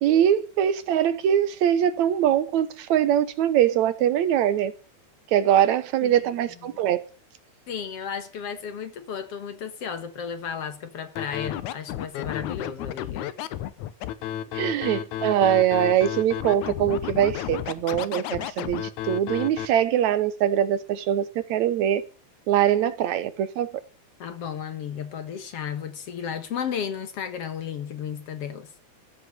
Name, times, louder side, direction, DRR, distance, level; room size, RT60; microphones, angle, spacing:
voice 1, 0.0-4.7 5.3-7.0 14.5-22.0 22.5-23.7, right 10 dB, 75° right, 2.3 m, -22 dB
voice 2, 7.7-13.3 24.2-28.7, left 7 dB, 60° left, 2.2 m, -34 dB
Scratching (performance technique), 11.2-19.7, left 11 dB, 80° left, 2.3 m, -32 dB
15.5 x 8.0 x 7.9 m
omnidirectional pair, 3.4 m